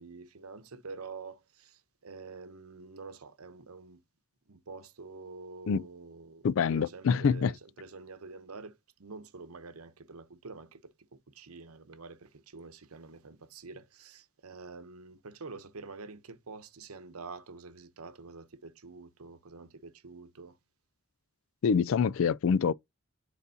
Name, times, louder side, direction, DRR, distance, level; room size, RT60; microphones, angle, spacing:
voice 1, 0.0-4.0 4.5-10.8 11.1-20.6, right 4 dB, 85° right, 0.9 m, -47 dB
voice 2, 6.4-7.5 21.6-22.7, left 6 dB, 65° left, 0.3 m, -26 dB
9.4 x 4.0 x 2.7 m
head